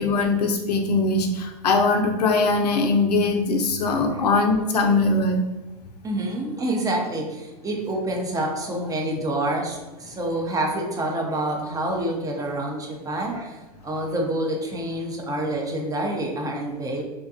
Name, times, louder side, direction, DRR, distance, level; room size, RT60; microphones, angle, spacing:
voice 1, 0.0-5.4, left 3 dB, 85° left, 3 dB, 0.5 m, -21 dB
voice 2, 3.9-4.3 6.0-17.0, right 1 dB, 15° right, 0 dB, 0.5 m, -27 dB
2.7 x 2.2 x 2.5 m, 1.1 s
hypercardioid pair, 95°, 20 cm